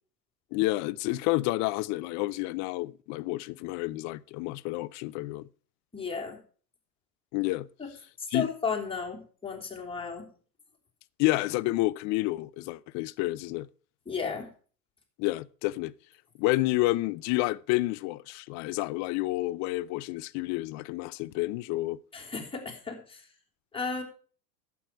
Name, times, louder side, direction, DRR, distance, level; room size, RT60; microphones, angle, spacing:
voice 1, 0.5-5.5 7.3-7.7 8.3-8.5 11.2-13.7 15.2-15.9 16.4-22.0, left 19 dB, 35° left, 0.6 m, -29 dB
voice 2, 5.9-6.4 7.8-7.9 8.2-10.3 14.0-14.5 22.1-23.3 23.7-24.0, left 5 dB, 10° left, 3.4 m, -34 dB
11.5 x 8.5 x 4.7 m
hypercardioid pair, 100°, 49 cm